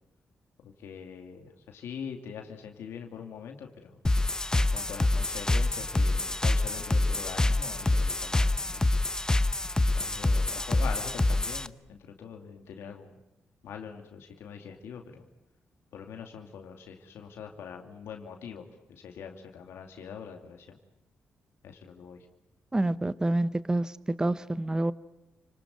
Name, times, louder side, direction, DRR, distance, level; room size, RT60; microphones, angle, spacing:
voice 1, 0.6-4.0 4.6-8.8 9.8-13.1 13.6-15.2 15.9-20.8 21.6-22.3, left 7 dB, 85° left, 2.5 m, -43 dB
sound 1, 4.0-11.7, left 2 dB, 15° left, 0.9 m, -26 dB
voice 2, 22.7-24.9, right 2 dB, 15° right, 0.9 m, -27 dB
29.5 x 19.5 x 9.3 m
cardioid pair, 70°, 4 cm